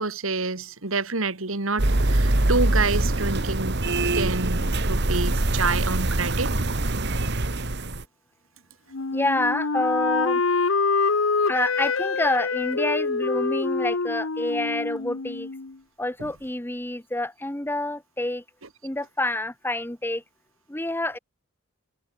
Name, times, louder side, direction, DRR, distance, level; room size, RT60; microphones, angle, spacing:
voice 1, 0.0-3.8 4.1-6.5 16.2-16.3, right 3 dB, 75° right, 2.6 m, -28 dB
sound 1, 1.8-8.0, right 2 dB, 55° right, 1.8 m, -23 dB
Wind instrument woodwind instrument, 8.9-15.7, left 4 dB, 70° left, 1.0 m, -25 dB
voice 2, 9.1-10.4 11.5-15.5 16.0-18.4 18.8-20.2 20.7-21.2, left 2 dB, 10° left, 1.1 m, -27 dB
head